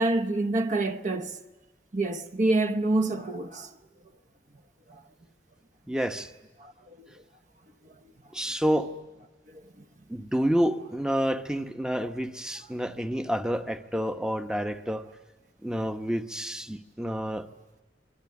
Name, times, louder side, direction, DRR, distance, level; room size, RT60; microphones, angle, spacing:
voice 1, 0.0-1.4 1.9-3.7 4.9-5.0 6.6-7.1 7.8-8.0 9.5-9.6, right 2 dB, 45° right, 1.0 m, -27 dB
voice 2, 5.9-6.3 8.3-8.9 10.1-15.1 15.6-17.5, equal, 5° right, 0.9 m, -29 dB
27.0 x 22.0 x 9.6 m
head